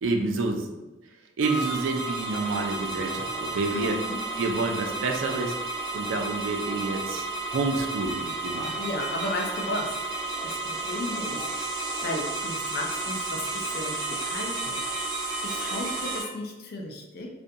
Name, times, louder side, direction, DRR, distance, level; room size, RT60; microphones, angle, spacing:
voice 1, 0.0-0.7 1.4-4.0 4.4-5.5 5.9-7.3 7.5-8.8, right 3 dB, 85° right, 3 dB, 0.4 m, -28 dB
sound 1, 1.4-16.2, right 3 dB, 20° right, 0.5 m, -32 dB
voice 2, 3.7-4.2 8.8-10.0 10.4-11.5 11.7-14.8 15.4-17.3, left 1 dB, 50° left, 1 dB, 0.4 m, -34 dB
2.5 x 2.2 x 2.7 m, 1.1 s
head